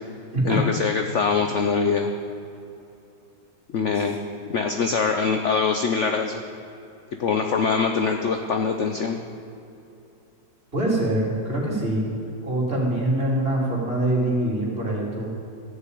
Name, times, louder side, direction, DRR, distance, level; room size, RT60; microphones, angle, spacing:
voice 1, 0.4-2.1 3.7-4.2 4.5-6.4 7.2-9.2, left 5 dB, 55° left, 5 dB, 0.9 m, -23 dB
voice 2, 10.7-12.1 12.4-15.2, right 1 dB, 30° right, -4 dB, 3.4 m, -24 dB
14.5 x 6.8 x 9.3 m, 2.7 s
omnidirectional pair, 1.9 m